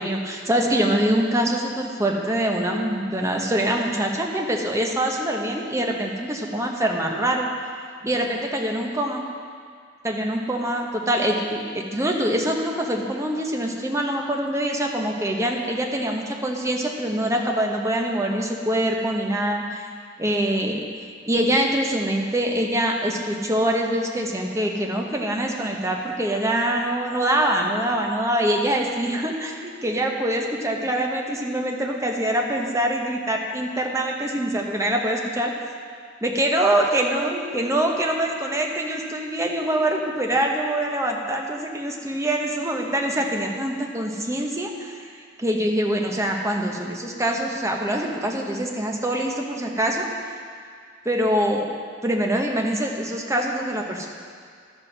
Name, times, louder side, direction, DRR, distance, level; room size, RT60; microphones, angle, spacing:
voice 1, 0.0-7.5 8.0-9.2 10.0-19.9 20.2-20.9 21.3-35.5 36.2-50.4 51.0-51.7 52.0-54.1, right 1 dB, 15° right, 0 dB, 1.1 m, -24 dB
12.0 x 8.1 x 6.0 m, 2.1 s
head